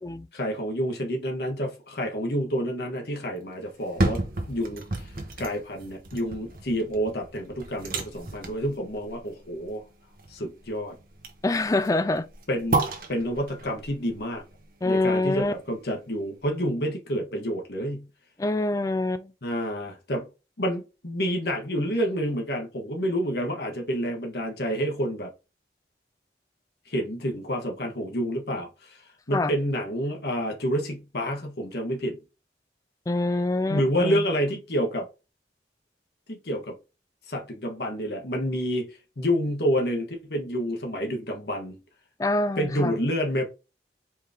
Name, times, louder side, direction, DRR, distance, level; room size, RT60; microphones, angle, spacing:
voice 1, 0.3-4.2 4.5-5.1 5.4-9.8 10.3-10.9 12.5-12.8 13.1-14.4 14.8-18.1 19.4-20.3 20.6-25.3 26.9-29.0 29.3-32.2 33.7-35.1 36.3-36.8 37.3-38.9 39.2-41.8 42.6-43.4, equal, 65° left, 1.2 m, -28 dB
sound 1, 3.7-15.8 16.2-16.3, right 2 dB, 50° right, 1.1 m, -33 dB
voice 2, 11.4-12.3 14.8-15.5 18.4-19.3 29.3-29.6 33.1-34.2 42.2-42.9, left 2 dB, 20° left, 0.3 m, -25 dB
4.6 x 3.2 x 3.5 m
head